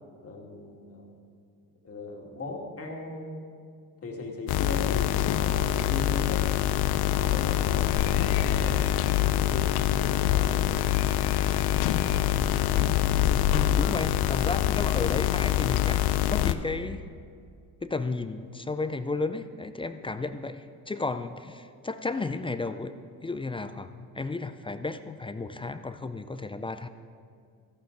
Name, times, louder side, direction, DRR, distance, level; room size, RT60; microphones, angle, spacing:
voice 1, 0.2-1.1 1.8-3.4 4.0-6.5 7.1-8.8 9.3-10.7, left 2 dB, 35° left, 0 dB, 2.2 m, -38 dB
sound 1, 4.5-16.5, left 12 dB, 70° left, 0.6 m, -25 dB
voice 2, 13.5-16.0 16.3-17.0 17.8-22.9 23.2-26.9, left 3 dB, 15° left, 10 dB, 0.4 m, -33 dB
14.0 x 11.5 x 3.9 m, 2.2 s
cardioid pair, 95°, 39 cm